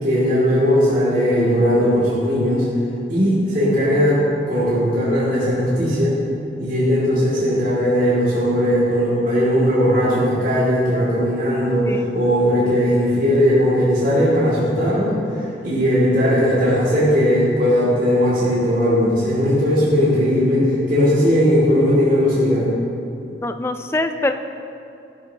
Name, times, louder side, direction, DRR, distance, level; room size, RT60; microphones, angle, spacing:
voice 1, 0.0-2.6 3.1-4.2 4.5-6.1 6.6-15.2 15.6-22.6, equal, 45° right, -9 dB, 2.4 m, -18 dB
voice 2, 23.4-24.3, left 2 dB, 15° left, 8 dB, 0.3 m, -23 dB
12.0 x 10.5 x 2.9 m, 2.6 s
head